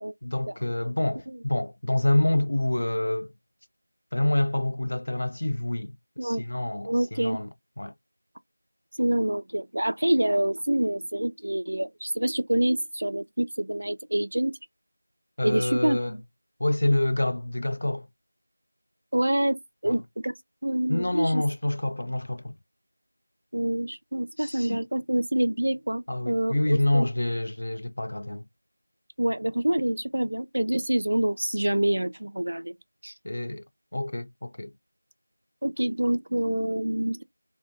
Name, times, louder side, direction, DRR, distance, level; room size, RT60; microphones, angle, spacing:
voice 1, 0.2-3.3 4.1-5.9 6.2-7.5 7.8-7.9 15.4-16.2 16.6-18.1 19.9-20.0 20.9-22.5 24.4-24.8 26.1-28.4 33.2-33.6 33.9-34.7, left 1 dB, 50° left, 0.3 m, -27 dB
voice 2, 6.8-7.4 9.0-14.5 15.4-16.2 19.1-20.3 20.6-21.4 23.5-27.1 29.2-32.7 33.0-33.1 35.6-37.2, right 1 dB, 60° right, 0.3 m, -26 dB
2.5 x 2.1 x 2.5 m
figure-of-eight pair, 175°, 0 cm